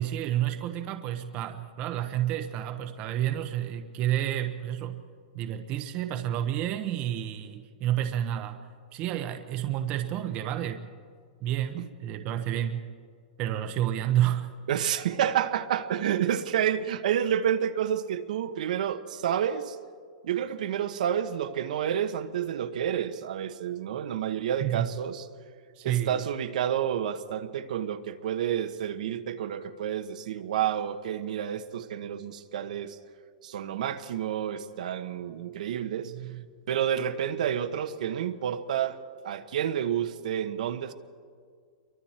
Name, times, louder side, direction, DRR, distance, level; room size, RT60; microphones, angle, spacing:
voice 1, 0.0-5.0 5.3-8.6 8.9-10.9 11.4-12.9 13.4-14.5 24.6-24.9 25.8-26.3, right 11 dB, 30° right, 7 dB, 0.9 m, -30 dB
voice 2, 14.7-19.8 20.2-25.3 25.8-33.0 33.4-40.9, right 9 dB, 65° right, 9 dB, 1.2 m, -29 dB
28.0 x 23.5 x 4.4 m, 2.1 s
supercardioid pair, 165°, 4 cm